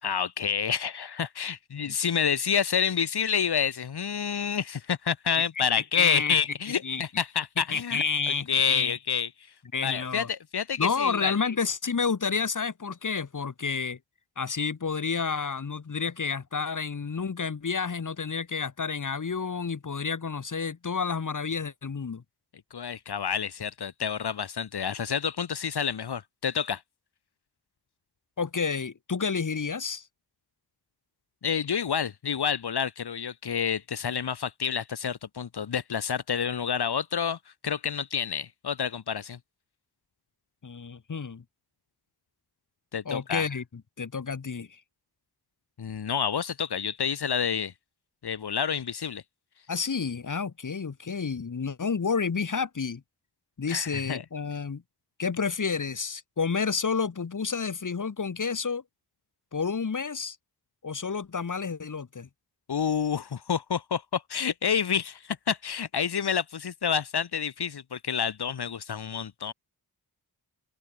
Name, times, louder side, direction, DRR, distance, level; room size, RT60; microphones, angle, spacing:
voice 1, 0.0-9.3 9.8-11.3 22.7-26.8 31.4-37.4 37.6-39.4 42.9-43.5 45.8-47.7 48.2-49.2 53.7-54.2 62.7-69.5, left 7 dB, 75° left, 4.3 m, -29 dB
voice 2, 5.9-6.3 6.8-7.0 7.6-8.9 9.7-10.3 10.8-14.0 14.4-22.2 28.4-30.1 40.6-41.4 43.0-44.8 49.7-53.0 53.6-54.8 55.2-58.8 59.5-60.4 60.8-62.3, left 5 dB, 50° left, 4.6 m, -30 dB
open air
wide cardioid pair, 115°, 39 cm